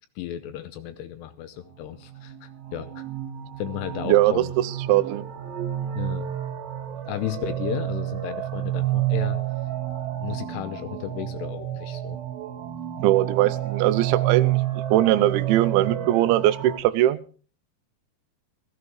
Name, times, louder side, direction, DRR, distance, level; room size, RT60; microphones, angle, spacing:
voice 1, 0.2-3.0 3.6-4.5 5.9-6.3 7.1-9.4 10.2-12.2, left 11 dB, 80° left, 10 dB, 2.7 m, -34 dB
sound 1, 2.1-16.8, right 13 dB, 65° right, 3.1 m, -29 dB
voice 2, 4.1-5.2 13.0-14.6 14.9-17.2, right 14 dB, 85° right, 14 dB, 3.1 m, -21 dB
17.5 x 14.5 x 3.1 m, 0.39 s
omnidirectional pair, 5.3 m